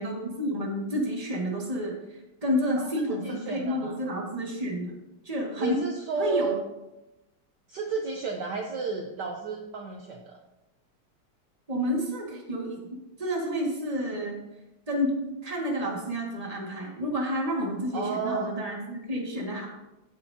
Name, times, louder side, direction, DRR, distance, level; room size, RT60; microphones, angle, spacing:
voice 1, 0.0-4.9 5.2-5.8 6.2-6.5 11.7-12.8 13.2-14.4 14.9-19.7, equal, 20° right, -1 dB, 1.7 m, -30 dB
voice 2, 2.8-4.0 5.6-6.6 7.7-10.4 17.9-18.5, right 4 dB, 60° right, 2 dB, 1.3 m, -32 dB
15.5 x 7.3 x 2.8 m, 0.95 s
omnidirectional pair, 2.4 m